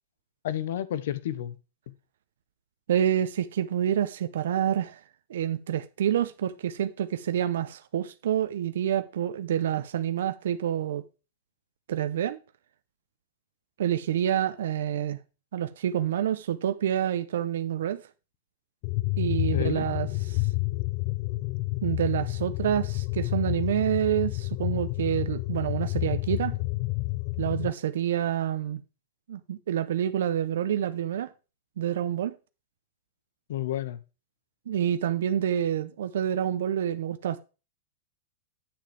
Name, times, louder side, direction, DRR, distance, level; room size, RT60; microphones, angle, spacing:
voice 1, 0.4-1.6 1.9-2.0 19.5-19.9 33.5-34.0, left 12 dB, 70° left, 0.9 m, -31 dB
voice 2, 2.9-5.0 5.3-11.0 11.9-12.4 13.8-15.2 15.5-18.0 19.2-20.5 21.8-26.6 27.4-28.8 29.3-31.3 31.8-32.3 34.7-37.4, right 10 dB, 80° right, 0.7 m, -28 dB
sound 1, 18.8-27.7, left 23 dB, 40° left, 0.4 m, -29 dB
8.7 x 7.7 x 3.4 m
supercardioid pair, 155°, 0 cm